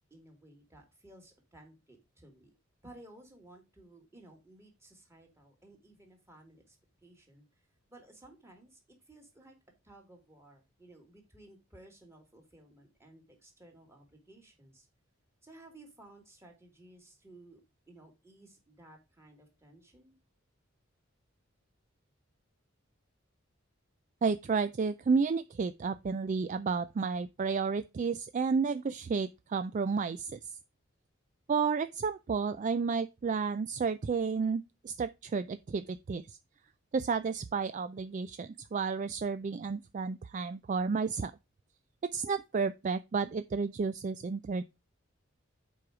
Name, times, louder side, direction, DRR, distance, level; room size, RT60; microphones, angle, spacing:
voice 1, 0.0-2.5 2.8-6.8 7.0-7.5 7.9-9.6 9.8-14.9 15.4-17.6 17.9-20.2, right 1 dB, 15° right, 2.4 m, -56 dB
voice 2, 24.2-30.4 31.5-36.4 36.9-41.3 42.0-44.6, right 5 dB, 40° right, 0.3 m, -31 dB
7.7 x 4.8 x 4.8 m
head